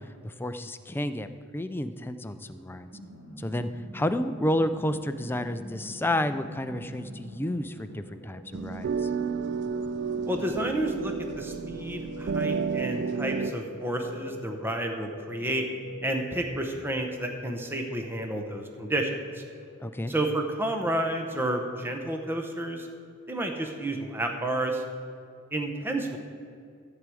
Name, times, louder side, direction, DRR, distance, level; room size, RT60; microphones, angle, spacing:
voice 1, 0.0-2.9 3.4-9.1 19.8-20.1, left 1 dB, 10° left, 9 dB, 0.4 m, -31 dB
sound 1, 2.4-16.7, equal, 80° right, 3.2 m, -49 dB
sound 2, 6.5-24.3, left 3 dB, 55° left, 1.2 m, -48 dB
sound 3, 8.5-13.5, right 5 dB, 55° right, 0.4 m, -31 dB
voice 2, 10.3-15.7 16.0-19.4 20.1-22.9 23.3-24.8 25.5-26.2, right 1 dB, 10° right, 3 dB, 0.8 m, -30 dB
14.5 x 4.9 x 7.7 m, 2.4 s
head